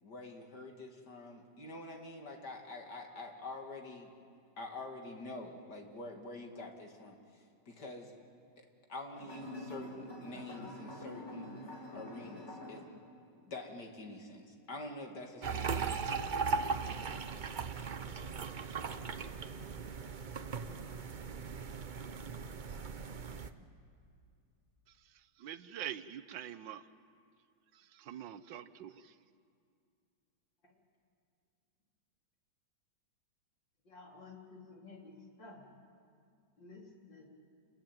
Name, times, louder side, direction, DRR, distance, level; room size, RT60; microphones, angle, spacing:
voice 1, 0.0-4.1 4.6-8.1 8.6-8.7 8.9-11.6 11.9-12.8 13.5-15.9, left 2 dB, 60° left, 2 dB, 3.1 m, -46 dB
sound 1, 9.1-12.8, left 1 dB, 35° left, 4.9 m, -46 dB
sound 2, 15.4-23.5, right 5 dB, 45° right, 0.6 m, -38 dB
voice 2, 25.4-26.8 27.7-29.1, right 10 dB, 80° right, 13 dB, 1.5 m, -44 dB
voice 3, 33.8-35.7 36.6-37.3, left 3 dB, 75° left, -1 dB, 4.4 m, -53 dB
28.0 x 21.5 x 9.1 m, 2.4 s
omnidirectional pair, 2.0 m